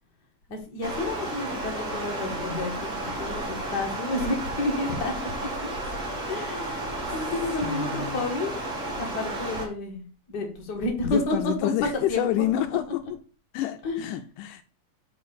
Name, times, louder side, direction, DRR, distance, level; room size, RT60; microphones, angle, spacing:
voice 1, 0.5-5.5 6.3-6.9 7.1-8.5 9.0-12.3 13.8-14.2, left 2 dB, 40° left, 1.8 m, -30 dB
Stream, 0.8-9.6, right 2 dB, 30° right, 1.9 m, -33 dB
voice 2, 7.6-8.3 11.1-13.0 13.5-14.6, left 12 dB, 80° left, 2.0 m, -28 dB
5.2 x 4.6 x 5.9 m
omnidirectional pair, 3.7 m